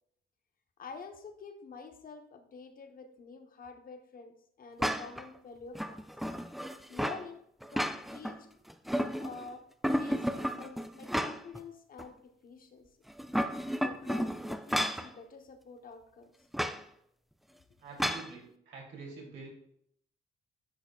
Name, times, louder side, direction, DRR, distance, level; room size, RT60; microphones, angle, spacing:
voice 1, 0.8-6.0 6.9-7.4 7.7-8.5 9.2-9.7 10.0-12.9 13.8-16.3, left 5 dB, 45° left, 6 dB, 1.0 m, -48 dB
sound 1, 4.8-5.3 5.7-7.2 7.6-8.3 8.7-9.4 9.8-11.6 12.0-12.1 13.1-15.1 16.5-16.8 18.0-18.3, equal, ahead, 0.4 m, -32 dB
voice 2, 17.8-19.5, right 4 dB, 70° right, -3 dB, 2.9 m, -46 dB
10.0 x 5.5 x 2.3 m, 0.72 s
cardioid pair, 90°, 20 cm